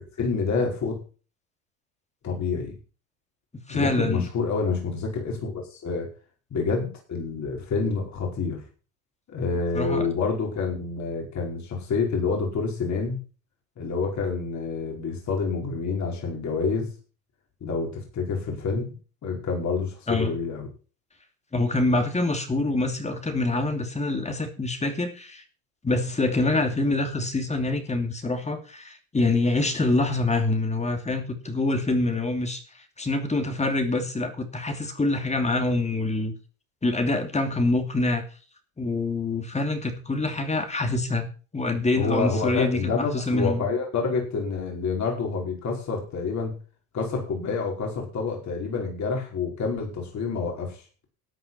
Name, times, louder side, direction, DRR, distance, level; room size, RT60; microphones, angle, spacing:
voice 1, 0.2-1.0 2.2-2.8 3.7-6.1 6.5-8.6 9.3-13.2 13.8-16.9 17.6-19.0 19.2-20.7 42.0-46.5 46.9-50.8, left 4 dB, 40° left, 0 dB, 5.1 m, -28 dB
voice 2, 3.7-4.3 9.7-10.1 20.1-20.4 21.5-25.4 25.8-32.6 33.0-36.3 36.8-38.2 38.8-43.7, left 2 dB, 15° left, 6 dB, 2.7 m, -25 dB
13.5 x 8.4 x 5.7 m, 0.37 s
supercardioid pair, 95°, 43 cm